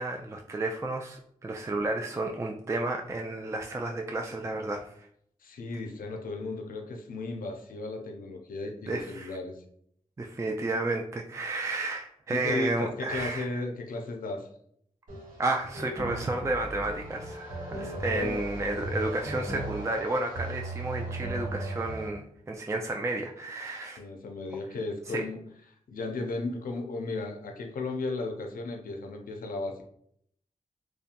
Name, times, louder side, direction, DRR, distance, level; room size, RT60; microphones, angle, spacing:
voice 1, 0.0-5.1 8.9-9.4 10.2-13.4 15.4-24.0 25.1-25.2, right 2 dB, 20° right, 2 dB, 0.3 m, -32 dB
voice 2, 5.4-9.6 12.3-14.5 18.1-18.4 24.0-25.4 25.9-29.8, left 2 dB, 80° left, 3 dB, 0.5 m, -35 dB
sound 1, 15.1-22.1, right 1 dB, 75° right, 1.1 m, -36 dB
2.7 x 2.2 x 2.5 m, 0.67 s
cardioid pair, 40°, 14 cm